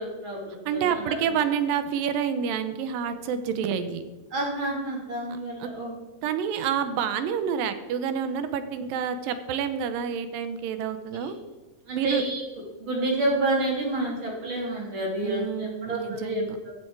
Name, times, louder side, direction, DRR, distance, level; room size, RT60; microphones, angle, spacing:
voice 1, 0.0-1.0 4.3-6.0 11.9-12.4 12.8-16.7, right 2 dB, 35° right, -2 dB, 3.3 m, -29 dB
voice 2, 0.7-4.0 5.6-5.7 6.2-11.3 11.9-12.2 15.2-16.6, right 7 dB, 85° right, 10 dB, 2.6 m, -28 dB
14.0 x 7.7 x 4.7 m, 1.2 s
omnidirectional pair, 4.0 m